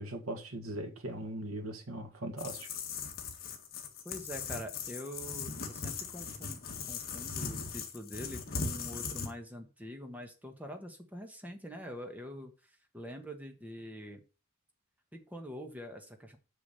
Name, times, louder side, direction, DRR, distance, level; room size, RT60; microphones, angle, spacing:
voice 1, 0.0-2.7, right 1 dB, 90° right, 1.8 m, -39 dB
sound 1, 2.4-9.3, left 5 dB, 45° left, 1.7 m, -39 dB
voice 2, 4.0-12.5 12.9-14.2 15.1-16.4, equal, 5° right, 1.4 m, -45 dB
6.8 x 6.1 x 6.8 m
head